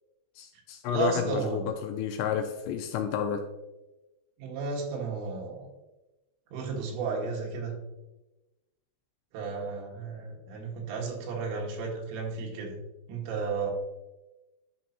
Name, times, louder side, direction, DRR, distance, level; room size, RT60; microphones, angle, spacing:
voice 1, 0.4-3.4, left 8 dB, 85° left, 5 dB, 2.7 m, -31 dB
voice 2, 0.9-1.7 4.4-5.7 6.5-7.8 9.3-12.8 13.1-13.7, right 5 dB, 85° right, -1 dB, 4.1 m, -33 dB
11.0 x 6.1 x 2.8 m, 1.0 s
omnidirectional pair, 5.7 m